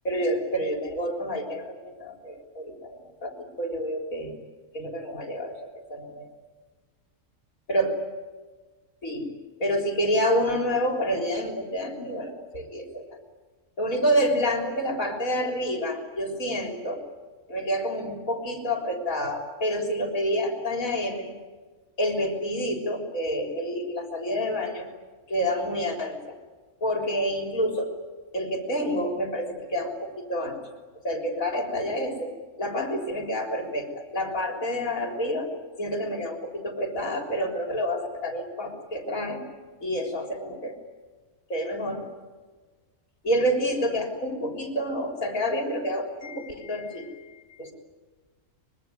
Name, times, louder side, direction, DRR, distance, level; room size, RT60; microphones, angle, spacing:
voice 1, 0.0-4.3 4.7-6.3 7.7-8.0 9.0-9.3 9.6-13.2 13.8-17.0 17.5-21.3 22.0-24.9 25.3-26.4 26.8-27.9 28.3-30.6 31.0-35.5 35.8-39.4 39.8-40.8 41.5-42.1 43.2-47.7, equal, 75° left, 4 dB, 4.2 m, -28 dB
24.5 x 22.5 x 9.3 m, 1.4 s
omnidirectional pair, 1.4 m